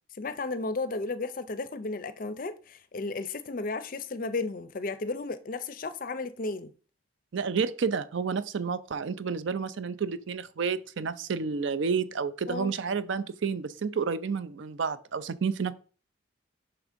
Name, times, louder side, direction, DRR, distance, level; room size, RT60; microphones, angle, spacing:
voice 1, 0.1-6.7 12.5-12.7, left 3 dB, 45° left, 0.5 m, -34 dB
voice 2, 7.3-15.7, right 5 dB, 70° right, 0.5 m, -30 dB
5.9 x 3.6 x 5.0 m
head